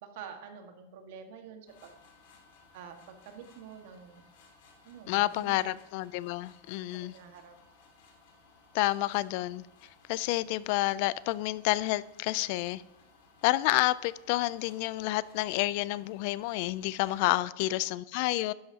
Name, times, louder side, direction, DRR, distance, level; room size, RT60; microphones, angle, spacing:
voice 1, 0.0-1.9 2.7-4.2 4.8-5.7 6.9-7.6 17.4-17.5, right 7 dB, 65° right, 1.6 m, -47 dB
sound 1, 1.7-17.4, left 3 dB, 75° left, 2.6 m, -60 dB
voice 2, 5.1-7.1 8.7-9.6 10.1-12.8 13.4-18.5, left 18 dB, 55° left, 0.3 m, -29 dB
12.0 x 10.0 x 2.8 m
supercardioid pair, 145°, 0 cm